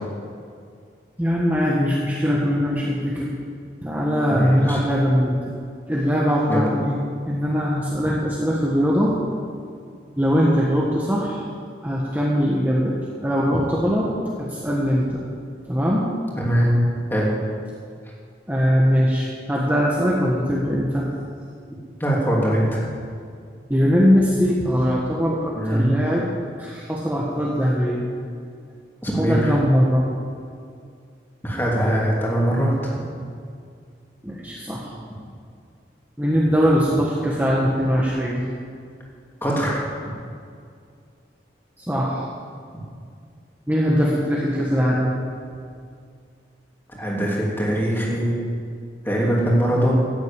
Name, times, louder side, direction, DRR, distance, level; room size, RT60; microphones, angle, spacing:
voice 1, 1.2-3.4 3.8-5.4 5.9-7.0 7.3-9.1 10.2-11.4 11.8-14.1 14.4-15.2 15.7-16.1 18.5-21.1 23.7-26.3 26.6-28.1 29.2-30.1 34.2-34.9 36.2-38.5 41.8-42.2 43.7-45.2, equal, 10° right, -5 dB, 1.3 m, -21 dB
voice 2, 4.3-4.8 6.5-6.6 16.4-16.7 17.1-17.3 22.0-22.8 25.5-25.9 29.0-29.5 31.4-33.0 39.4-39.8 47.0-48.4 49.0-49.9, right 1 dB, 10° left, -4 dB, 2.8 m, -21 dB
14.0 x 7.9 x 8.8 m, 2.3 s
head